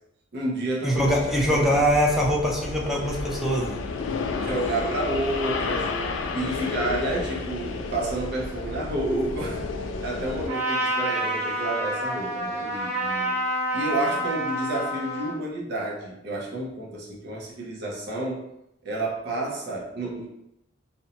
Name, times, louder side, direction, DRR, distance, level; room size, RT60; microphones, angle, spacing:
voice 1, 0.3-1.8 4.4-9.7 10.0-13.3 13.7-18.5 18.8-20.3, right 2 dB, 60° right, -3 dB, 0.6 m, -30 dB
voice 2, 0.8-3.8, equal, ahead, -3 dB, 0.5 m, -23 dB
sound 1, 0.9-10.5, left 4 dB, 85° left, 0.3 m, -31 dB
Trumpet, 10.4-15.4, right 1 dB, 35° right, 0.9 m, -28 dB
2.5 x 2.1 x 2.7 m, 0.83 s
head